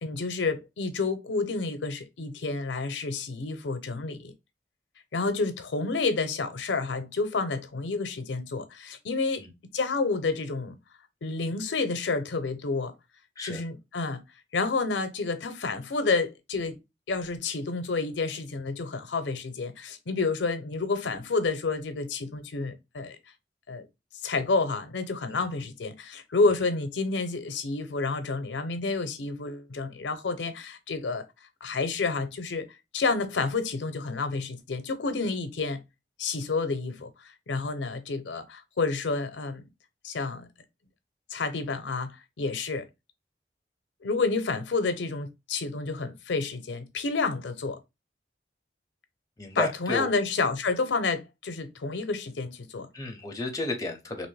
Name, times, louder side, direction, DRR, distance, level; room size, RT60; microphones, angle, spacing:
voice 1, 0.0-4.3 5.1-9.4 9.7-10.8 11.2-12.9 13.4-14.2 14.5-16.8 17.1-23.2 23.7-23.9 24.2-31.2 31.6-32.7 32.9-35.8 36.2-39.6 40.0-40.5 41.3-42.9 44.0-47.8 49.5-52.9, left 3 dB, 90° left, 0.6 m, -29 dB
voice 2, 49.4-50.1 52.9-54.3, left 2 dB, 20° left, 0.6 m, -32 dB
2.9 x 2.6 x 3.2 m
head